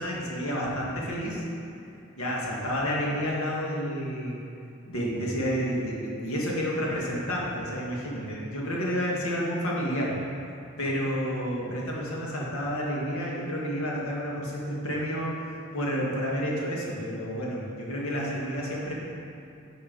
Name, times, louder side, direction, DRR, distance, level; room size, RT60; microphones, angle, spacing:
voice 1, 0.0-1.4 2.2-4.4 4.9-10.1 10.8-18.9, equal, 80° left, -4 dB, 1.7 m, -30 dB
9.5 x 5.4 x 4.0 m, 2.6 s
head